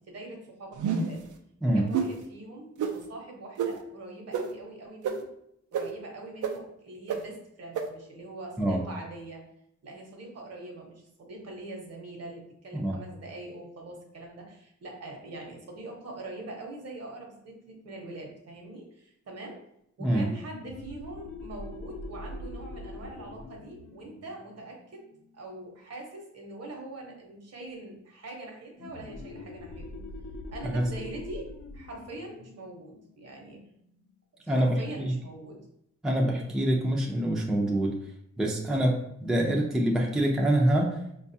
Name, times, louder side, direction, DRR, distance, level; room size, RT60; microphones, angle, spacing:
voice 1, 0.1-1.2 1.7-5.3 5.7-9.4 9.8-19.6 20.0-25.0 25.3-30.0 30.5-33.6 34.4-35.6 38.7-38.8, right 2 dB, 55° right, 0 dB, 0.9 m, -43 dB
sound 1, 0.8-1.2 1.9-2.1 2.8-2.9 3.6-3.7 4.3-4.4 5.0-5.1 5.7-5.8 6.4-6.5 7.1-7.2 7.7-7.8, right 7 dB, 80° right, 0.5 m, -27 dB
sound 2, 20.4-25.7 28.8-34.1, left 2 dB, 55° left, 0.5 m, -43 dB
voice 2, 34.5-35.1 36.0-37.9 38.4-41.0, right 1 dB, ahead, -2 dB, 0.5 m, -25 dB
4.6 x 2.3 x 2.7 m, 0.76 s
wide cardioid pair, 120°, 30 cm